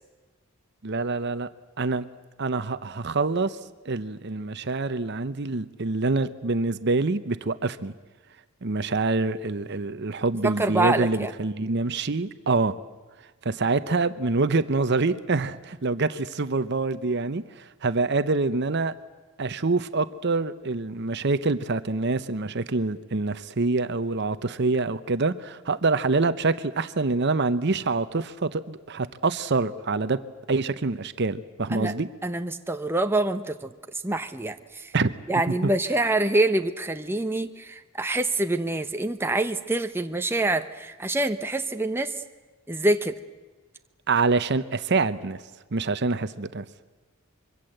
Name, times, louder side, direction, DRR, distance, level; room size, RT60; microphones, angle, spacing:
voice 1, 0.8-1.5 1.8-2.1 2.4-3.6 3.9-7.9 8.6-12.7 13.4-18.9 19.4-30.2 30.5-32.1 34.9-35.1 35.6-35.7 44.1-45.4 45.7-46.7, right 3 dB, 55° right, 12 dB, 0.8 m, -26 dB
voice 2, 10.4-11.3 31.7-31.9 32.2-33.7 34.0-34.9 35.3-42.1 42.7-43.2, right 2 dB, 10° right, 6 dB, 0.9 m, -26 dB
25.0 x 23.5 x 7.9 m, 1.3 s
head